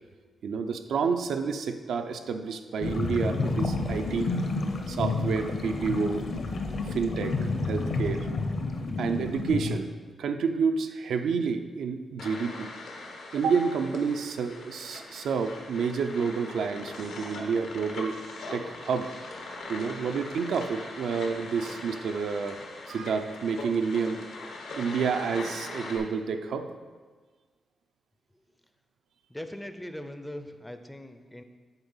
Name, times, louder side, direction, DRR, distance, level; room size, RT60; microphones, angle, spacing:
voice 1, 0.4-4.4 4.9-6.2 6.8-8.3 9.0-9.9 10.2-12.7 13.3-18.2 18.5-19.1 19.7-22.6 22.9-24.2 24.8-26.7, right 5 dB, 80° right, 7 dB, 0.5 m, -29 dB
sound 1, 2.8-9.8, left 3 dB, 50° left, 0.7 m, -30 dB
sound 2, 12.2-26.0, left 2 dB, 90° left, 1.2 m, -41 dB
voice 2, 29.3-31.4, left 1 dB, 5° left, 8 dB, 0.4 m, -40 dB
8.0 x 4.0 x 5.5 m, 1.4 s
wide cardioid pair, 140°, 0 cm